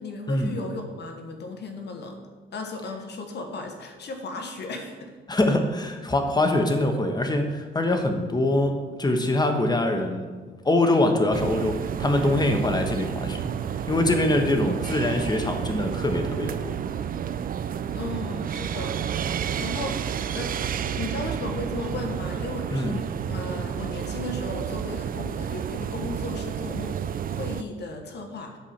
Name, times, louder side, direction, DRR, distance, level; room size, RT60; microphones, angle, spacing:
voice 1, 0.0-2.2 2.5-5.2 17.9-19.0 19.3-28.6, left 2 dB, 60° left, 4 dB, 1.3 m, -36 dB
voice 2, 5.3-10.3 10.6-13.5 13.9-16.8 22.7-23.0, left 1 dB, 20° left, 4 dB, 1.3 m, -24 dB
sound 1, 11.3-27.6, right 8 dB, 45° right, 0.4 m, -30 dB
8.3 x 4.9 x 7.2 m, 1.4 s
cardioid pair, 90°, 20 cm